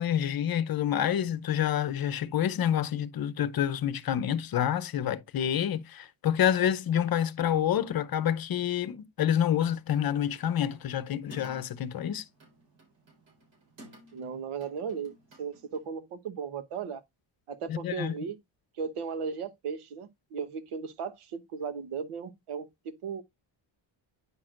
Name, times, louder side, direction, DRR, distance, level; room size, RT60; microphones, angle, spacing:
voice 1, 0.0-12.2 17.7-18.1, left 10 dB, 45° left, 0.7 m, -28 dB
sound 1, 9.6-15.9, right 1 dB, 60° right, 4.4 m, -56 dB
voice 2, 14.1-15.1 15.4-17.0 17.5-18.4 18.8-23.2, right 6 dB, 90° right, 1.2 m, -36 dB
9.6 x 6.1 x 2.4 m
wide cardioid pair, 165°, 49 cm